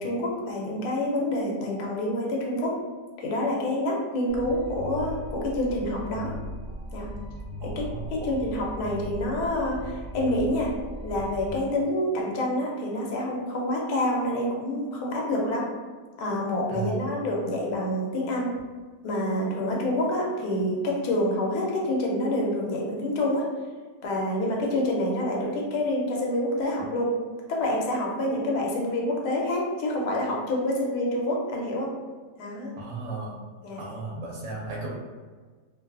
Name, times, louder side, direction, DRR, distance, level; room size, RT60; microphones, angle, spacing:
voice 1, 0.0-2.7 3.2-6.3 6.9-7.1 7.6-7.8 8.1-10.7 11.0-15.6 16.2-18.5 19.0-23.4 24.0-27.1 27.5-31.9 32.4-32.7 33.6-33.8, left 1 dB, 75° left, -2 dB, 1.1 m, -27 dB
sound 1, 4.3-11.5, equal, 15° left, 0.8 m, -38 dB
voice 2, 7.6-8.3 16.7-17.1 32.8-33.4 33.8-34.9, right 3 dB, 65° right, -3 dB, 0.8 m, -35 dB
2.7 x 2.3 x 2.3 m, 1.4 s
omnidirectional pair, 1.8 m